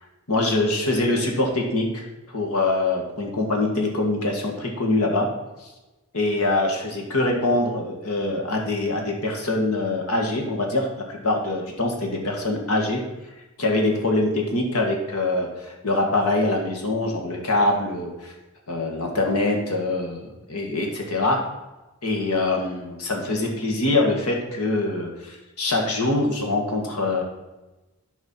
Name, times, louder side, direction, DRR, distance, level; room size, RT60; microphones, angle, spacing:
voice 1, 0.3-2.0 2.3-5.3 5.6-5.7 6.1-13.0 13.6-18.3 18.7-21.4 22.0-27.2, left 2 dB, 85° left, 1 dB, 1.8 m, -24 dB
12.0 x 4.8 x 4.4 m, 1.1 s
head